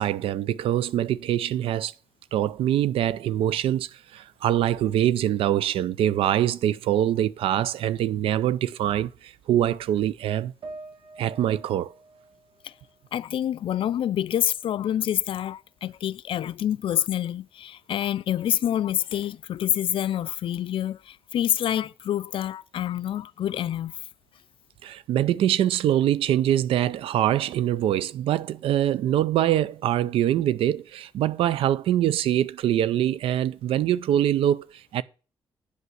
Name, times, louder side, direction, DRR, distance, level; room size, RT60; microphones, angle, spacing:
voice 1, 0.0-1.9 2.3-10.5 11.2-11.9 24.8-35.0, right 11 dB, 85° right, 0.4 m, -24 dB
sound 1, 10.6-14.0 14.4-15.5, right 2 dB, 70° right, 2.0 m, -47 dB
voice 2, 13.1-24.0, left 11 dB, 70° left, 0.5 m, -27 dB
8.1 x 6.5 x 7.8 m
cardioid pair, 75°, 9 cm